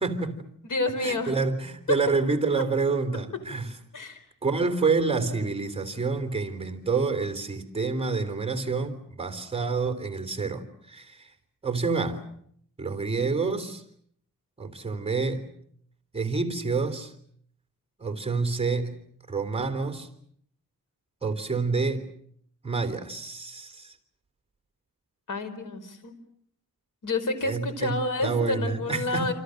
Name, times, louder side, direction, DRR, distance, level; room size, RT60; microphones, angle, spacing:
voice 1, 0.0-0.5 1.0-3.8 4.4-11.3 11.6-12.3 12.8-13.8 14.6-15.5 16.1-17.1 18.0-20.1 21.2-22.1 22.6-24.0 27.4-29.3, right 4 dB, 15° right, 3.3 m, -28 dB
voice 2, 0.6-1.4 3.9-4.2 25.3-26.1 27.0-29.3, left 2 dB, 65° left, 4.6 m, -29 dB
28.0 x 27.0 x 6.5 m
wide cardioid pair, 140°, 33 cm